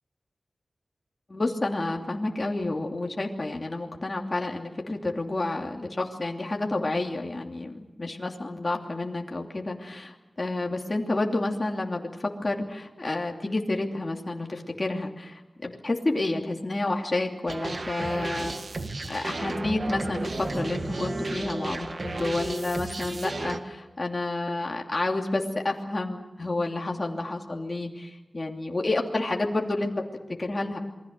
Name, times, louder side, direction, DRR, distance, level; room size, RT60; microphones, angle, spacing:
voice 1, 1.3-18.5 19.1-29.9 30.4-30.8, left 2 dB, 35° left, 1 dB, 2.8 m, -30 dB
sound 1, 17.5-23.6, right 2 dB, 55° right, 1.7 m, -33 dB
27.5 x 21.5 x 6.7 m, 1.1 s
wide cardioid pair, 90°, 0 cm